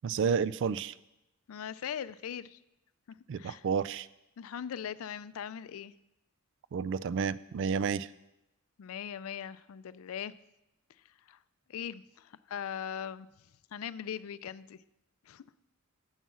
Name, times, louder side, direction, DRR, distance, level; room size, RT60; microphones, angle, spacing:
voice 1, 0.0-0.9 3.3-4.1 6.7-8.1, right 6 dB, 60° right, 18 dB, 0.3 m, -30 dB
voice 2, 1.5-2.6 3.4-3.6 4.4-5.9 8.8-10.3 11.3-11.4 11.7-13.3 13.7-14.8 15.3-15.5, left 8 dB, 85° left, 17 dB, 0.4 m, -40 dB
9.3 x 7.3 x 6.1 m, 0.91 s
head